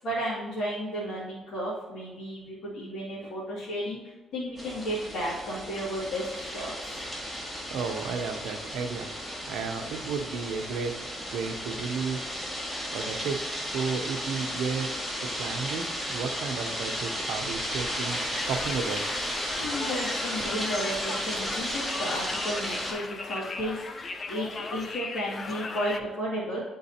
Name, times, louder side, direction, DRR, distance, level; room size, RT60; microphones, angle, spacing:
voice 1, 0.0-7.1 19.5-26.6, equal, 70° left, -8 dB, 2.0 m, -33 dB
sound 1, 4.6-22.9, equal, 15° left, 2.1 m, -34 dB
voice 2, 7.7-9.1 9.5-11.0 11.3-12.2 12.9-15.0 15.2-18.2 18.5-19.0, right 5 dB, 90° right, 5 dB, 0.7 m, -33 dB
Conversation, 18.1-26.0, left 3 dB, 40° left, 0.5 m, -37 dB
11.0 x 3.8 x 2.8 m, 1.1 s
cardioid pair, 90°, 0 cm